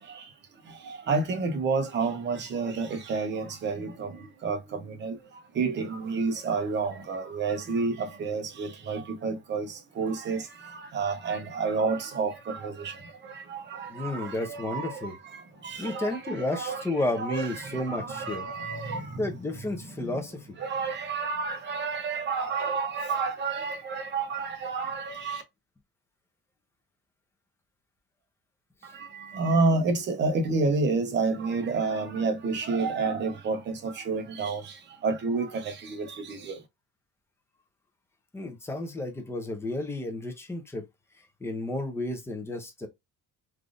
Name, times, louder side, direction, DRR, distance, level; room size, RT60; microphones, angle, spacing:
voice 1, 0.9-4.1 4.4-5.2 5.6-10.4 10.7-13.0 13.3-15.1 15.6-19.3 20.0-20.1 20.6-25.4 29.0-34.7 35.0-36.6, right 4 dB, 30° right, 0.7 m, -30 dB
voice 2, 13.9-15.1 15.8-18.5 19.2-20.6 38.3-40.8 41.4-42.9, left 2 dB, 5° left, 0.5 m, -32 dB
3.4 x 2.5 x 2.5 m
cardioid pair, 160°, 34 cm